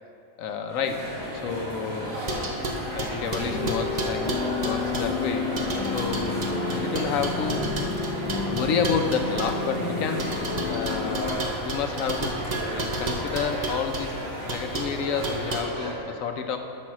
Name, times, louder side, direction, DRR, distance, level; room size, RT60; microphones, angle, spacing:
voice 1, 0.4-2.6 2.9-4.3 4.6-5.4 5.8-7.7 8.5-12.3 12.7-16.6, left 6 dB, 75° left, 6 dB, 1.1 m, -30 dB
sound 1, 0.7-15.9, right 1 dB, 75° right, 2.4 m, -34 dB
mostly empty soda can playing, 2.3-5.2 5.6-9.6 10.2-14.1 14.5-14.9 15.2-15.6, right 2 dB, 35° right, 0.8 m, -32 dB
sound 2, 3.5-11.3, left 4 dB, 30° left, 1.3 m, -31 dB
8.8 x 5.6 x 6.1 m, 2.6 s
omnidirectional pair, 1.4 m